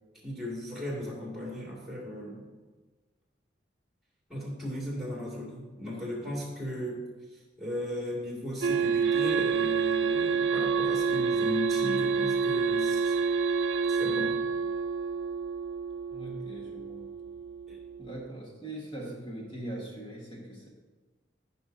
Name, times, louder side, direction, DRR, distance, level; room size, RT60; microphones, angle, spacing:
voice 1, 0.2-2.5 4.3-7.0 7.3-13.2 13.9-14.4 17.7-17.8, left 1 dB, ahead, -4 dB, 2.2 m, -36 dB
sound 1, 8.6-18.3, right 5 dB, 80° right, 0.5 m, -28 dB
voice 2, 16.1-17.1 18.0-20.7, right 1 dB, 25° left, -3 dB, 1.5 m, -41 dB
15.0 x 5.6 x 2.7 m, 1.3 s
head